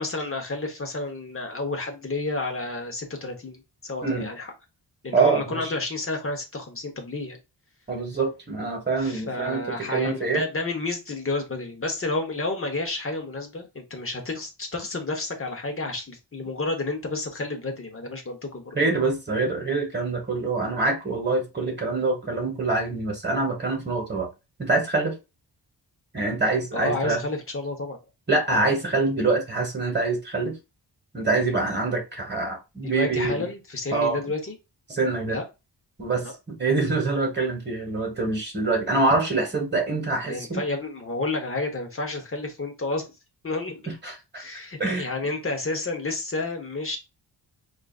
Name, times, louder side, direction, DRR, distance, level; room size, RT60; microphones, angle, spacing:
voice 1, 0.0-4.5 5.0-7.4 9.0-18.8 26.7-28.0 32.8-34.5 35.3-35.4 36.2-36.3 40.2-43.1 43.4-43.8 44.3-47.0, left 2 dB, 30° left, 1.0 m, -30 dB
voice 2, 5.1-5.7 7.9-10.4 18.7-24.3 24.6-25.2 26.1-27.2 28.3-30.6 31.1-33.5 33.9-34.2 34.9-35.4 36.0-40.7 43.8-44.4 44.8-45.1, right 3 dB, 25° right, 1.3 m, -25 dB
4.6 x 2.5 x 2.4 m
wide cardioid pair, 130°, 43 cm